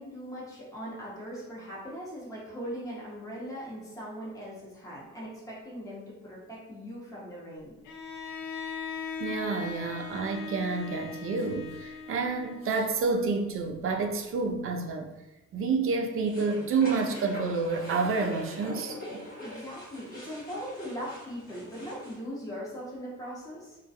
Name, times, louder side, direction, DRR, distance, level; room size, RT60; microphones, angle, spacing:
voice 1, 0.0-7.7 19.4-23.8, equal, 10° left, 0.9 m, -40 dB
Bowed string instrument, 7.8-12.9, left 5 dB, 85° left, 0.5 m, -39 dB
voice 2, 9.2-15.1 15.5-19.0, right 4 dB, 45° right, 0.4 m, -29 dB
sound 1, 16.3-22.2, left 1 dB, 30° left, 1.1 m, -42 dB
2.3 x 2.2 x 2.6 m
cardioid pair, 90°, 30 cm